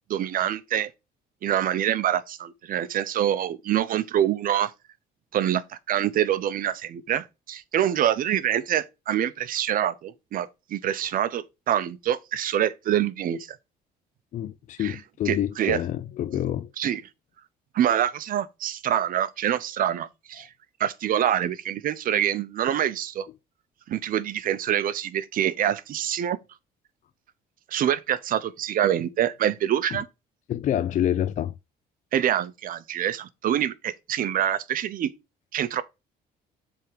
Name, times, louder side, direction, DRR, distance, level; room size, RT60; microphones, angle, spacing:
voice 1, 0.1-0.9 1.4-4.7 5.3-13.6 14.8-15.0 15.3-15.8 16.8-17.0 17.7-20.5 20.8-23.3 23.9-26.4 27.7-30.1 32.1-35.1 35.5-35.8, right 10 dB, 55° right, 0.8 m, -25 dB
voice 2, 14.3-16.7 30.5-31.5, left 11 dB, 50° left, 0.4 m, -27 dB
7.4 x 3.6 x 4.9 m
cardioid pair, 110°, 17 cm